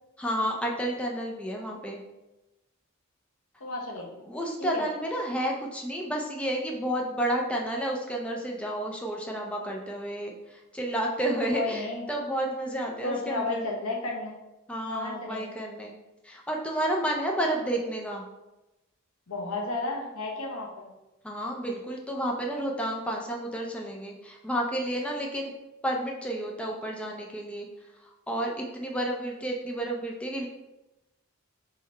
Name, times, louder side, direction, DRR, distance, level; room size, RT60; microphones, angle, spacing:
voice 1, 0.2-2.0 4.3-13.7 14.7-15.9 16.2-18.2 21.2-25.5 25.8-27.7 28.0-30.5, right 1 dB, 5° left, -1 dB, 0.4 m, -31 dB
voice 2, 3.6-4.3 4.6-4.8 11.5-12.0 13.0-14.4 14.9-15.5 19.3-20.9, left 3 dB, 85° left, 0 dB, 0.9 m, -33 dB
3.8 x 3.2 x 4.3 m, 1.0 s
head